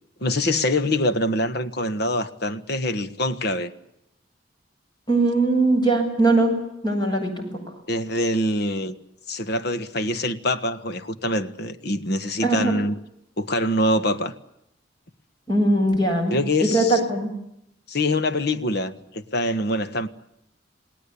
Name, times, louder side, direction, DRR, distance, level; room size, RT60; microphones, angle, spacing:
voice 1, 0.2-3.7 7.9-8.9 9.3-13.0 13.4-14.3 16.3-17.0 17.9-20.1, left 1 dB, 60° left, 1.6 m, -24 dB
voice 2, 5.1-6.6 6.8-7.5 12.4-12.7 15.5-17.3, right 2 dB, 25° left, 7.5 m, -20 dB
28.5 x 19.0 x 8.5 m
head